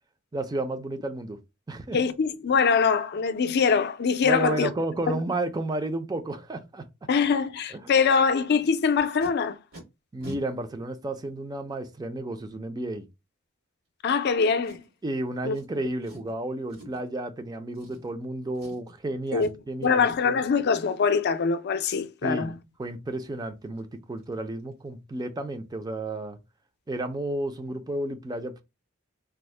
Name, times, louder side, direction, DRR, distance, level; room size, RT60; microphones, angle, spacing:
voice 1, 0.3-1.4 1.7-2.0 4.2-6.9 7.7-7.9 10.1-13.1 15.0-20.4 22.2-26.4 26.9-28.6, right 2 dB, 20° right, 0.4 m, -32 dB
voice 2, 1.9-4.7 5.1-5.2 7.1-9.6 14.0-14.8 15.4-15.6 19.3-19.5 19.8-22.6, left 5 dB, 55° left, 0.4 m, -23 dB
Packing tape duct tape, 8.7-9.3 9.7-9.8 10.2-10.4 11.2-11.3 14.6-15.1 15.5-15.7 16.0-16.3 16.7-17.1 17.7-18.3 18.5-19.0 19.4-19.5 19.8-20.2 23.2-23.3 23.7-23.8 24.2-24.3 24.6-24.9 25.1-25.2, equal, 90° right, 2.1 m, -46 dB
3.4 x 2.1 x 3.1 m
head